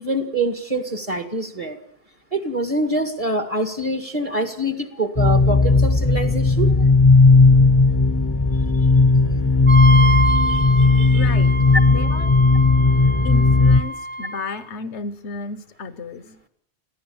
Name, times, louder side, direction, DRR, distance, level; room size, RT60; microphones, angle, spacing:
voice 1, 0.0-1.8 2.3-6.7 10.3-11.2, right 1 dB, 30° right, 8 dB, 2.1 m, -25 dB
sound 1, 5.2-13.8, left 3 dB, 25° left, 1.0 m, -15 dB
voice 2, 8.5-8.9 10.8-11.5 11.9-12.3 13.2-16.4, left 5 dB, 80° left, 14 dB, 1.3 m, -34 dB
Wind instrument woodwind instrument, 9.7-14.6, right 2 dB, 10° right, 0.7 m, -26 dB
22.0 x 15.5 x 8.8 m, 0.65 s
omnidirectional pair, 1.1 m